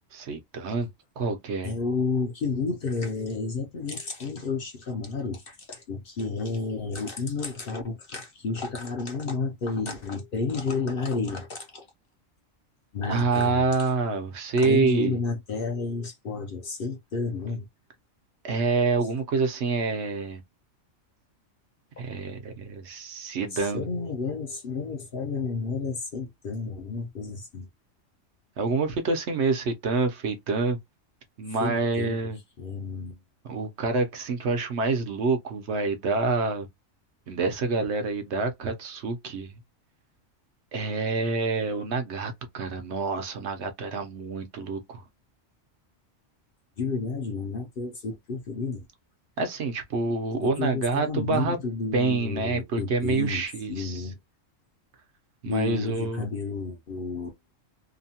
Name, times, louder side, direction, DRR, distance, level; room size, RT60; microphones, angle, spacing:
voice 1, 0.1-0.9 1.2-1.7 13.1-15.2 18.4-20.4 22.0-23.9 28.6-30.8 31.4-32.4 33.4-36.7 37.3-39.5 40.7-45.0 49.4-51.6 51.9-54.0 55.4-56.2, right 4 dB, 65° right, 0.9 m, -27 dB
voice 2, 1.6-11.8 12.9-13.9 14.6-17.7 23.5-27.7 31.6-32.2 32.6-33.2 46.8-48.8 50.4-54.2 55.4-57.3, left 4 dB, 55° left, 0.7 m, -31 dB
2.9 x 2.2 x 2.7 m
omnidirectional pair, 1.3 m